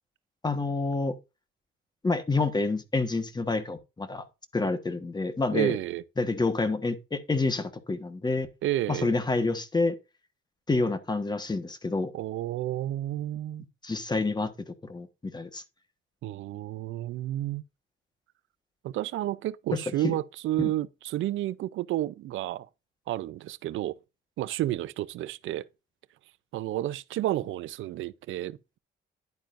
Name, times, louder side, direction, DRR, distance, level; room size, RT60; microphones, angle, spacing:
voice 1, 0.4-1.2 2.0-4.2 4.5-5.8 6.2-8.5 8.9-9.9 10.7-12.1 13.8-15.6 20.0-20.1 20.6-20.7, left 3 dB, 20° left, 1.3 m, -28 dB
voice 2, 5.5-6.0 8.6-9.1 12.1-13.7 16.2-17.6 18.8-22.7 23.1-24.0 24.4-25.6 26.5-28.8, right 14 dB, 80° right, 0.5 m, -31 dB
10.5 x 8.6 x 2.6 m
cardioid pair, 90°, 20 cm